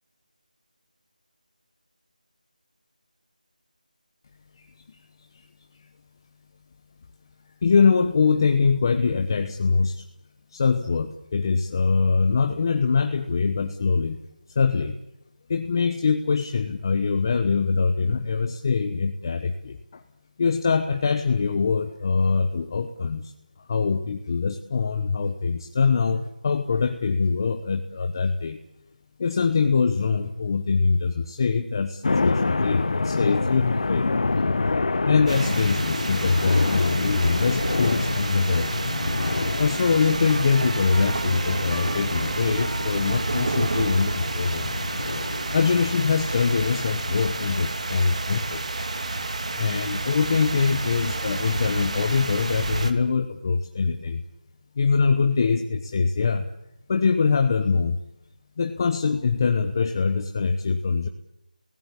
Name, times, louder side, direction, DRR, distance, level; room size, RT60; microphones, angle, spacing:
voice 1, 7.6-10.0 10.5-14.2 14.5-15.0 15.5-20.0 20.4-23.3 23.7-28.6 29.2-34.1 35.1-38.7 39.6-44.7 45.5-48.6 49.6-54.2 54.8-56.5 56.9-58.0 58.6-61.1, left 5 dB, 30° left, 7 dB, 1.1 m, -23 dB
sound 1, 32.0-47.7, left 3 dB, 50° left, 1.3 m, -28 dB
sound 2, 35.3-52.9, right 2 dB, 50° right, 2.6 m, -30 dB
Trumpet, 38.9-46.0, right 1 dB, 85° right, 2.7 m, -41 dB
28.5 x 18.5 x 8.9 m, 0.84 s
figure-of-eight pair, 170°, 5 cm